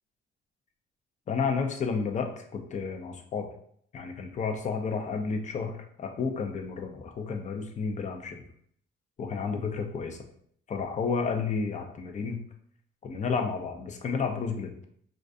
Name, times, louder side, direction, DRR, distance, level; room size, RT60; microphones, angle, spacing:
voice 1, 1.3-3.5 3.9-8.5 9.2-10.2 10.7-12.4 13.0-14.8, left 5 dB, 35° left, 4 dB, 0.4 m, -31 dB
2.4 x 2.4 x 2.4 m, 0.64 s
cardioid pair, 90°, 20 cm